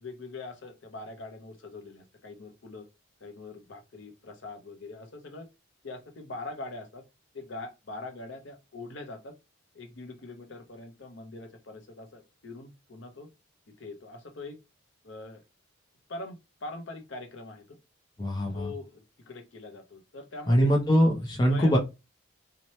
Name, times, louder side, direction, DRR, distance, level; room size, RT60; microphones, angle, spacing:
voice 1, 0.0-2.9 3.2-5.5 5.8-7.0 7.3-9.3 9.7-13.3 13.8-14.6 15.0-15.4 16.1-17.8 18.5-20.7 21.0-21.2 21.5-21.8, left 2 dB, 60° left, 0.6 m, -42 dB
voice 2, 18.2-18.7 20.5-21.8, equal, 20° left, 0.5 m, -22 dB
2.8 x 2.1 x 3.0 m
head